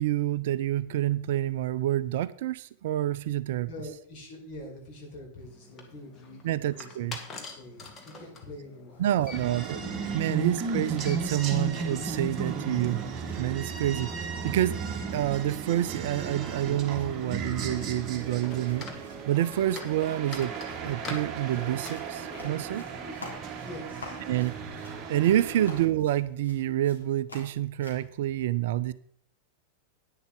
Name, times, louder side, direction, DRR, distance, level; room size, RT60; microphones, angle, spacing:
voice 1, 0.0-3.7 6.4-7.2 9.0-13.0 13.4-14.7 15.1-18.9 19.3-20.5 20.8-22.9 24.3-24.6 25.1-28.9, right 13 dB, 55° right, 16 dB, 0.4 m, -28 dB
voice 2, 3.7-9.4 10.2-10.4 22.9-24.4, left 1 dB, 40° left, -1 dB, 4.6 m, -45 dB
sound 1, 5.4-23.4, left 3 dB, 25° left, 1.9 m, -47 dB
sound 2, 8.9-28.1, left 3 dB, 75° left, 3.0 m, -52 dB
sound 3, 9.3-25.9, right 4 dB, 30° right, 1.4 m, -35 dB
10.5 x 9.9 x 3.8 m, 0.62 s
figure-of-eight pair, 90°, 0 cm